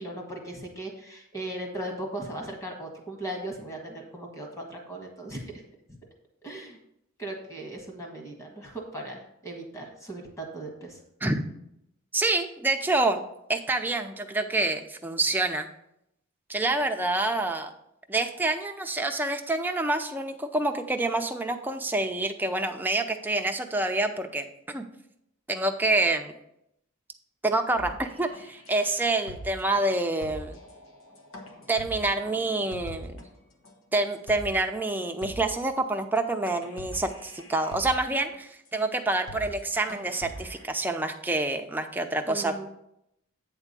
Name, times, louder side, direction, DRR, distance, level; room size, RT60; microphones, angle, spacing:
voice 1, 0.0-5.5 5.9-6.0 6.4-6.8 7.2-11.0 42.3-42.6, right 1 dB, 15° left, 1 dB, 1.5 m, -38 dB
voice 2, 12.1-13.2 13.5-15.7 16.5-17.7 18.1-24.9 25.5-26.3 27.4-30.6 31.7-33.3 33.9-42.6, right 2 dB, 10° right, 4 dB, 0.5 m, -27 dB
sound 1, 27.8-33.3 33.6-33.7 34.1-34.6 34.9-35.0 35.2-35.7 36.2-36.3 36.5-38.3 38.8-38.9 39.1-39.6 39.9-40.6, equal, 65° left, 1.3 m, -43 dB
8.9 x 3.6 x 6.7 m, 0.78 s
head